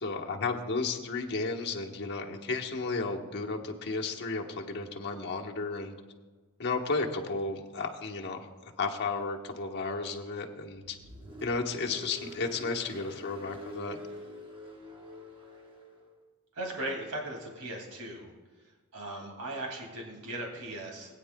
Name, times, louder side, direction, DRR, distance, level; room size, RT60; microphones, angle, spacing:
voice 1, 0.0-6.0 6.6-11.0 11.4-14.0, left 3 dB, 50° left, 1 dB, 1.1 m, -33 dB
Car, 10.7-16.1, left 1 dB, 25° right, 1.2 m, -46 dB
voice 2, 16.5-18.3 18.9-21.1, right 1 dB, 85° right, 0 dB, 2.3 m, -38 dB
20.0 x 9.3 x 2.2 m, 1.3 s
head